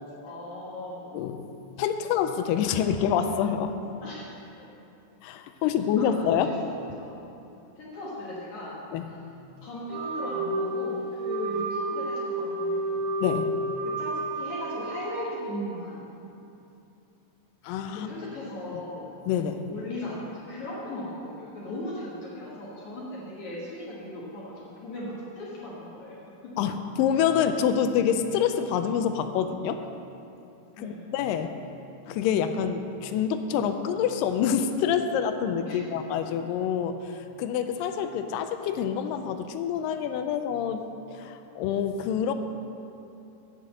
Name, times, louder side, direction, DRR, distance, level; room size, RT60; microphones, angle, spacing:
voice 1, 0.2-1.1 4.0-4.7 6.0-6.5 6.9-7.4 7.8-8.8 9.6-13.0 13.8-16.1 17.9-19.1 19.7-26.5 30.8-31.1 35.6-35.8 36.1-36.2, left 1 dB, 65° left, -6 dB, 2.8 m, -38 dB
voice 2, 1.1-1.5 1.8-3.7 5.2-6.5 8.9-9.0 9.6-9.7 13.2-13.5 17.6-18.1 19.3-19.6 26.6-29.9 30.8-31.5 32.1-42.3, left 8 dB, 90° left, 8 dB, 2.2 m, -27 dB
Wind instrument woodwind instrument, 9.9-15.5, right 1 dB, 70° right, 1.9 m, -31 dB
8.9 x 6.7 x 7.5 m, 2.8 s
omnidirectional pair, 3.8 m